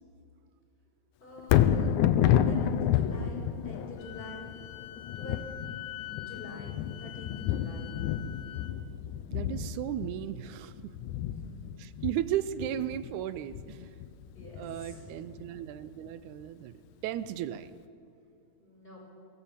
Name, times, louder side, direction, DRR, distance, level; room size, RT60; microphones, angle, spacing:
voice 1, 1.2-1.9 2.3-4.5 5.2-5.4 6.2-7.9 11.3-11.8 14.3-15.3 18.6-19.0, left 1 dB, 15° left, -3 dB, 5.5 m, -47 dB
Thunder, 1.4-15.6 16.1-16.2, left 10 dB, 90° left, 2.2 m, -30 dB
Wind instrument woodwind instrument, 4.0-8.7, left 13 dB, 70° left, 1.3 m, -45 dB
voice 2, 9.3-10.9 11.8-13.9 14.6-16.8 17.0-17.7, right 11 dB, 90° right, 14 dB, 2.1 m, -35 dB
23.5 x 16.5 x 7.4 m, 2.4 s
omnidirectional pair, 3.3 m